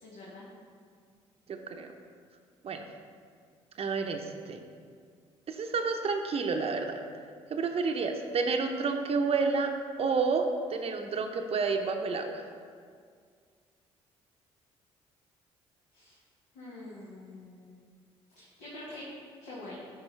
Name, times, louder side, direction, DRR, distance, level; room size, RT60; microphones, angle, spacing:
voice 1, 0.0-0.4 15.9-16.2 16.5-17.7 18.3-19.1 19.4-19.8, left 2 dB, 75° left, -7 dB, 1.4 m, -45 dB
voice 2, 3.8-4.2 4.5-4.6 5.5-7.0 7.5-9.7 10.0-10.4 10.7-12.4, right 4 dB, 45° right, 4 dB, 0.7 m, -29 dB
9.4 x 5.2 x 3.3 m, 2.1 s
hypercardioid pair, 55°, 14 cm